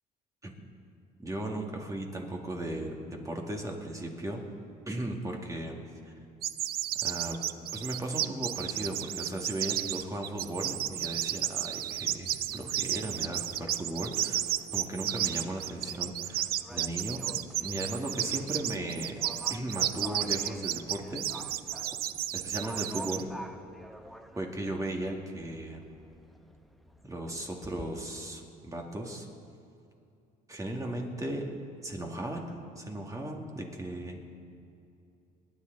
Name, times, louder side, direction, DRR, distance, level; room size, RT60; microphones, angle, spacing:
voice 1, 1.2-4.4 4.9-5.8 7.0-7.4 7.7-14.4 14.7-17.2 17.6-19.2 19.5-21.3 22.3-23.3 24.3-25.8 27.0-29.3 30.5-31.4 31.8-32.5 32.8-34.2, right 1 dB, 20° right, 1 dB, 2.2 m, -36 dB
sound 1, 6.4-23.2, right 12 dB, 65° right, 0.5 m, -32 dB
Livestock farm animals working animals, 8.5-27.9, equal, ahead, 0.8 m, -51 dB
28.5 x 10.5 x 4.1 m, 2.6 s
cardioid pair, 110°, 17 cm